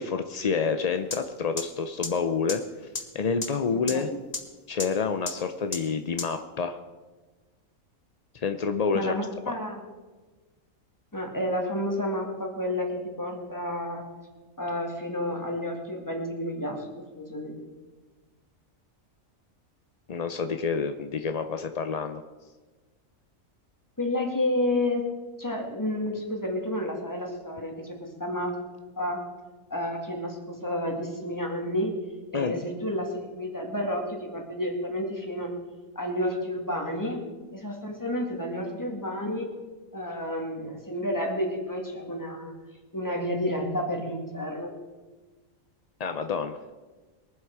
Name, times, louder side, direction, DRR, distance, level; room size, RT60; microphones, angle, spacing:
voice 1, 0.0-2.6 3.1-4.1 4.7-6.8 8.3-9.1 9.5-9.6 20.1-22.2 32.3-32.7 46.0-46.6, left 5 dB, 55° left, 7 dB, 0.4 m, -28 dB
sound 1, 1.1-1.2 1.6-1.7 2.0-2.1 2.5-2.6 2.9-3.0 3.4-3.5 3.9-4.0 4.3-4.4 4.8-4.9 5.3-5.4 5.7-5.8 6.2-6.3, left 3 dB, 30° left, 1.3 m, -30 dB
voice 2, 3.7-4.2 8.9-9.8 11.1-14.1 14.6-16.9 17.2-17.6 24.0-25.0 25.4-28.5 29.0-29.2 29.7-31.9 32.3-35.5 36.0-37.3 37.5-39.5 39.9-42.5 42.9-44.7, left 1 dB, 15° left, 1 dB, 2.2 m, -30 dB
22.5 x 7.7 x 4.7 m, 1.3 s
omnidirectional pair, 1.4 m